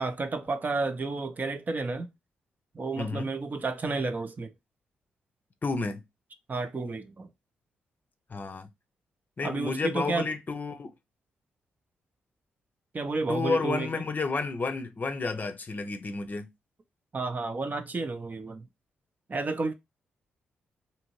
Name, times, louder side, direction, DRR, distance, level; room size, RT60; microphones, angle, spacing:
voice 1, 0.0-2.1 2.7-4.5 6.5-7.3 9.4-10.3 12.9-14.0 17.1-18.7 19.3-19.7, right 3 dB, 35° right, 0.6 m, -31 dB
voice 2, 3.0-3.3 5.6-6.0 8.3-8.7 9.4-10.9 13.3-16.5, left 4 dB, 40° left, 0.6 m, -31 dB
2.8 x 2.6 x 3.0 m
hypercardioid pair, 40°, 5 cm